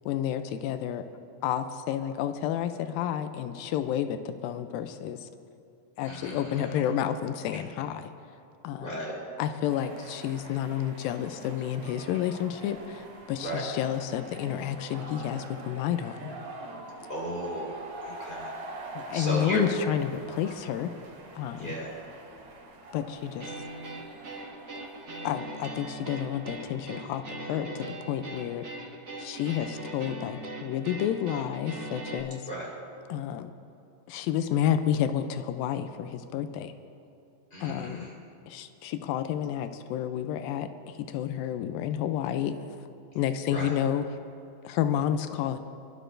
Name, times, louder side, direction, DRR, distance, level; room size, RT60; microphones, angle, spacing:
voice 1, 0.1-1.0 1.4-5.3 6.0-8.1 8.6-8.9 9.4-16.3 19.0-20.9 21.3-21.7 22.9-23.5 25.2-28.7 29.2-32.4 33.1-33.5 34.1-36.7 37.6-38.1 38.5-42.5 43.2-44.1 44.6-45.6, left 10 dB, 90° left, 9 dB, 2.3 m, -30 dB
voice 2, 6.0-6.8 7.5-7.6 8.8-9.2 13.4-13.6 17.1-18.5 19.1-19.6 21.6-21.9 32.5-32.7 37.5-38.1 43.5-43.7, equal, 15° left, -4 dB, 3.9 m, -35 dB
sound 1, 9.7-26.8, right 2 dB, 75° right, 3.6 m, -44 dB
sound 2, 23.4-32.2, right 2 dB, 35° right, 1.8 m, -40 dB
29.5 x 12.0 x 2.6 m, 2.6 s
omnidirectional pair, 4.0 m